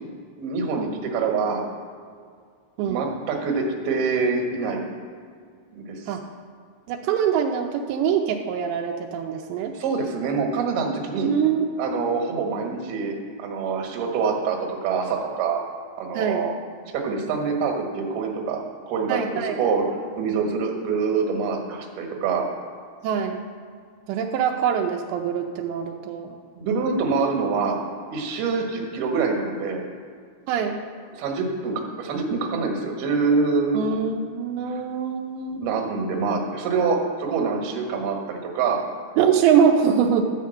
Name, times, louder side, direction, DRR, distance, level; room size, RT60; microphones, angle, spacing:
voice 1, 0.4-1.6 2.9-4.9 5.7-5.9 9.7-11.3 11.8-13.1 13.4-15.6 16.0-16.5 16.9-18.6 18.9-19.9 20.2-22.5 26.6-27.8 28.1-29.8 31.2-33.8 34.7-34.8 35.6-38.8, right 5 dB, 70° right, 1 dB, 3.2 m, -25 dB
voice 2, 6.9-9.7 11.2-11.7 16.1-16.5 19.1-19.6 23.0-23.4 24.1-26.3 30.5-30.8 33.7-35.6 39.2-40.3, right 7 dB, 85° right, 2 dB, 2.9 m, -23 dB
13.5 x 5.1 x 7.8 m, 2.1 s
omnidirectional pair, 4.9 m